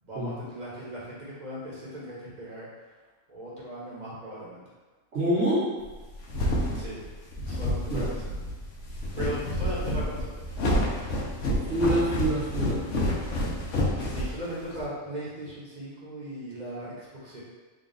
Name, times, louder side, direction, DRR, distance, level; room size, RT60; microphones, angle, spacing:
voice 1, 0.0-2.7 3.3-4.6 6.8-7.0 7.5-8.1 9.2-10.4 14.0-17.4, right 1 dB, 40° right, -7 dB, 1.1 m, -38 dB
voice 2, 5.1-5.7 7.9-8.1 11.5-12.8, right 1 dB, 65° right, -7 dB, 1.3 m, -26 dB
sound 1, 5.9-14.8, left 1 dB, 75° left, 1.1 m, -29 dB
3.8 x 2.4 x 3.8 m, 1.3 s
omnidirectional pair, 1.3 m